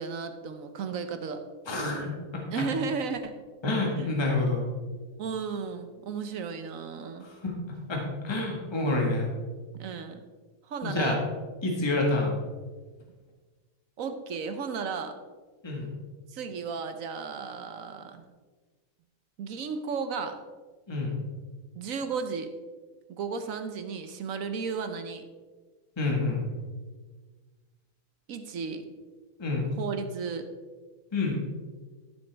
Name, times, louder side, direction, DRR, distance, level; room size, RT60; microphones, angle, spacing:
voice 1, 0.0-1.4 2.5-3.4 4.0-4.1 5.2-7.3 9.7-10.2 10.7-11.2 14.0-15.2 16.3-18.2 19.4-20.4 21.7-22.5 23.1-25.2 28.3-28.8 29.7-30.5, right 5 dB, 70° right, 8 dB, 1.2 m, -34 dB
voice 2, 1.7-2.1 2.6-2.7 3.6-4.7 7.4-7.5 7.9-9.3 10.8-11.2 11.6-12.4 15.6-15.9 20.9-21.2 26.0-26.4 29.4-29.7 31.1-31.4, left 2 dB, 20° left, -1 dB, 1.6 m, -27 dB
13.5 x 6.9 x 3.4 m, 1.4 s
omnidirectional pair, 1.5 m